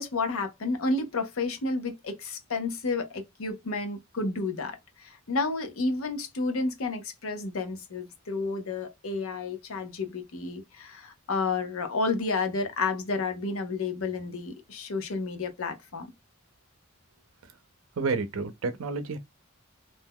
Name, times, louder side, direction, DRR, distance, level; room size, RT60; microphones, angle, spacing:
voice 1, 0.0-16.1, left 3 dB, 90° left, 0.7 m, -31 dB
voice 2, 18.0-19.2, right 4 dB, 85° right, 0.5 m, -30 dB
2.6 x 2.2 x 3.5 m
head